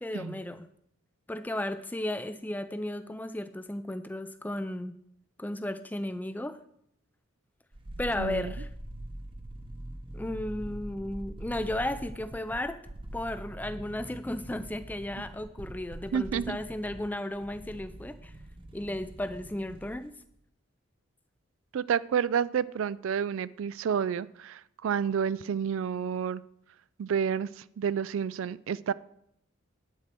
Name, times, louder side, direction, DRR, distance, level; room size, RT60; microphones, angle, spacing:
voice 1, 0.0-0.7 1.3-4.9 5.4-6.6 8.0-8.7 10.1-12.8 13.1-18.3 18.7-20.1, left 1 dB, 10° left, 11 dB, 0.3 m, -34 dB
sound 1, 7.7-20.1 20.4-20.5, right 1 dB, 25° right, 0.8 m, -43 dB
voice 2, 8.2-8.5 16.1-16.6 21.7-26.4 27.0-28.9, right 7 dB, 70° right, 18 dB, 0.3 m, -30 dB
10.5 x 4.4 x 7.6 m, 0.74 s
head